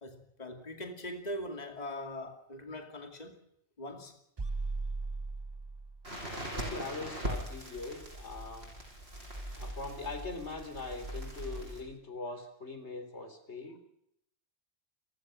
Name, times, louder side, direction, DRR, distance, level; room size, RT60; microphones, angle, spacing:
voice 1, 0.0-3.4 3.8-4.2, left 1 dB, 40° left, 2.6 m, -41 dB
sound 1, 4.4-6.2, right 3 dB, 25° right, 0.8 m, -37 dB
Crackle, 6.0-11.8, right 1 dB, 70° right, 8.1 m, -41 dB
voice 2, 6.5-8.7 9.6-13.8, left 3 dB, 85° left, 3.8 m, -41 dB
29.5 x 15.5 x 6.4 m
omnidirectional pair, 1.1 m